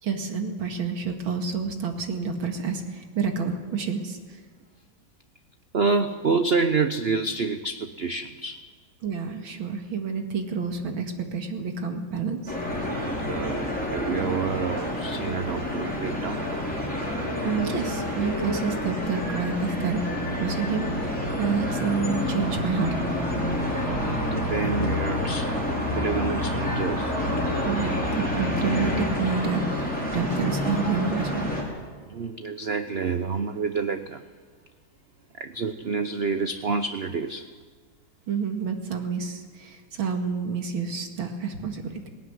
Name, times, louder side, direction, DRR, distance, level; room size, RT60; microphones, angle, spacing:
voice 1, 0.0-4.4 9.0-12.6 17.4-20.0 20.4-22.9 27.6-31.5 38.3-42.1, right 5 dB, 85° right, 4 dB, 2.8 m, -29 dB
voice 2, 5.7-8.6 13.2-16.5 23.7-27.1 32.1-34.2 35.4-37.5, right 4 dB, 55° right, 9 dB, 0.6 m, -28 dB
sound 1, 12.5-31.6, left 1 dB, 5° left, 5.7 m, -28 dB
20.0 x 18.0 x 9.7 m, 1.5 s
omnidirectional pair, 2.1 m